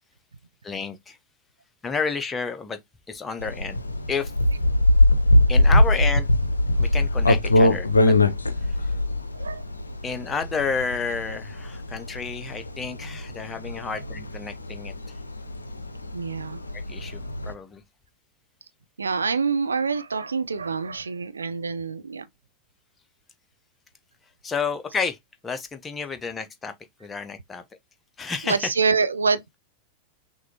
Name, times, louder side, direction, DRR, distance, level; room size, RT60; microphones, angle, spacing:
voice 1, 0.6-1.2 1.8-2.8 3.1-3.8 4.1-4.3 5.5-6.3 6.8-8.2 8.6-8.9 10.0-14.9 16.9-17.8 24.4-25.2 25.4-26.7 27.0-27.6 28.2-28.8, left 5 dB, 20° left, 0.8 m, -30 dB
sound 1, 3.4-17.5, left 1 dB, 80° left, 0.5 m, -22 dB
voice 2, 16.1-16.6 19.0-22.3 28.4-29.4, right 5 dB, 75° right, 0.4 m, -26 dB
6.0 x 2.6 x 2.8 m
figure-of-eight pair, 90°, 0 cm